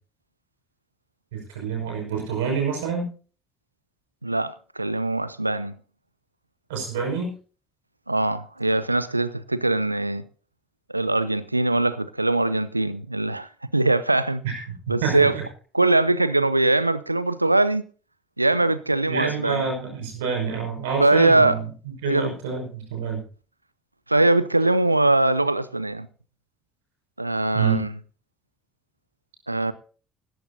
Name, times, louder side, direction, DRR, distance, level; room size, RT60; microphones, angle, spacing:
voice 1, 1.3-3.1 6.7-7.3 14.4-14.6 14.9-15.4 18.6-18.7 19.1-21.7 22.0-23.2 27.5-27.9, right 6 dB, 70° right, 5.7 m, -27 dB
voice 2, 4.2-5.7 8.1-10.3 10.9-14.4 14.9-15.3 15.7-17.8 18.4-19.6 21.0-21.6 22.0-22.3 24.1-26.1 27.2-27.9 29.5-29.7, right 2 dB, 90° right, 0.5 m, -22 dB
17.0 x 14.0 x 2.7 m
figure-of-eight pair, 55°, 0 cm